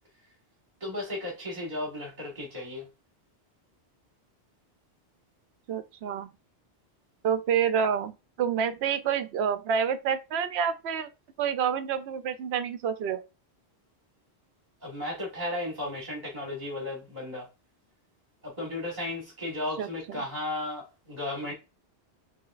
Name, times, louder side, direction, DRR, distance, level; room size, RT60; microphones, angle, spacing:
voice 1, 0.8-2.8 14.8-17.5 18.4-21.5, left 1 dB, 40° right, 1.7 m, -34 dB
voice 2, 5.7-6.3 7.2-11.1 11.4-13.2 19.8-20.2, right 7 dB, 75° right, 0.9 m, -28 dB
4.9 x 3.4 x 2.4 m
omnidirectional pair, 1.1 m